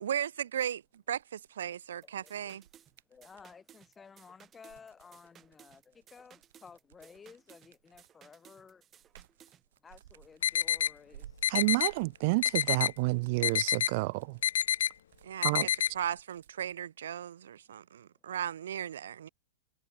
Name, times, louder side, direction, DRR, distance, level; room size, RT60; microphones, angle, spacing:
voice 1, 0.0-2.6 15.2-19.3, right 9 dB, 90° right, 1.1 m, -36 dB
sound 1, 0.8-3.6 4.5-8.3 8.7-16.8, right 12 dB, 65° right, 7.1 m, -59 dB
sound 2, 2.0-9.6, right 9 dB, 15° right, 7.4 m, -60 dB
voice 2, 2.2-2.6 3.1-8.8 9.8-11.4, left 5 dB, 10° left, 6.9 m, -55 dB
sound 3, 10.4-10.9 11.4-11.9 12.4-12.9 13.4-13.9 14.4-14.9 15.4-15.9, left 10 dB, 85° left, 0.6 m, -27 dB
voice 3, 11.5-14.4 15.4-15.7, right 26 dB, 40° right, 0.5 m, -29 dB
supercardioid pair, 165°, 0 cm